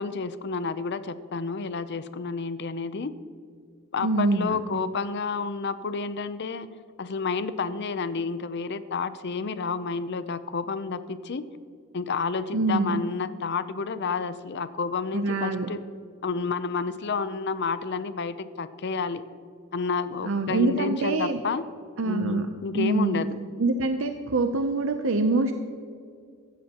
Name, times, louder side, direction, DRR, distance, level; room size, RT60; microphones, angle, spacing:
voice 1, 0.0-3.1 3.9-6.7 7.0-11.4 11.9-15.8 16.2-19.2 19.7-21.7 22.0-23.4, left 4 dB, 55° left, 13 dB, 0.6 m, -30 dB
voice 2, 4.0-4.6 12.5-13.0 15.1-15.7 20.2-21.4 22.0-22.5 22.7-23.2 23.6-25.5, right 2 dB, 65° right, 7 dB, 0.6 m, -25 dB
15.5 x 13.0 x 2.9 m, 2.3 s
head